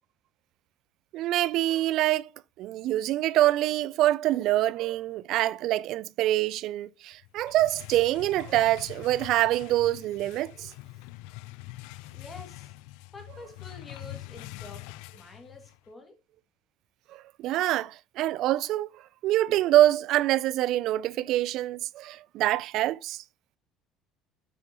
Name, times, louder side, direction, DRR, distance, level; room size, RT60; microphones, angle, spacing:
voice 1, 1.1-2.3 2.6-10.7 17.1-18.9 19.2-23.2, right 14 dB, 60° right, 0.3 m, -25 dB
sound 1, 7.2-15.9, left 18 dB, 85° left, 0.4 m, -44 dB
voice 2, 12.2-12.7 13.1-14.9 15.1-16.2, left 2 dB, 20° left, 2.1 m, -47 dB
7.7 x 6.0 x 2.9 m
cardioid pair, 135°, 0 cm